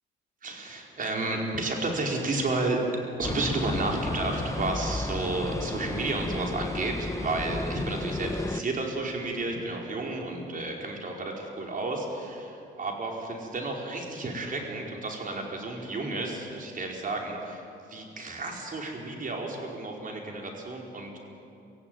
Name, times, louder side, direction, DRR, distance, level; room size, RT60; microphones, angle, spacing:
voice 1, 0.4-2.8 3.2-17.6 17.9-21.2, right 2 dB, 45° right, 0 dB, 4.8 m, -32 dB
sound 1, 3.2-8.6, left 2 dB, 15° left, 1.0 m, -33 dB
24.5 x 15.5 x 9.3 m, 2.6 s
cardioid pair, 90°, 20 cm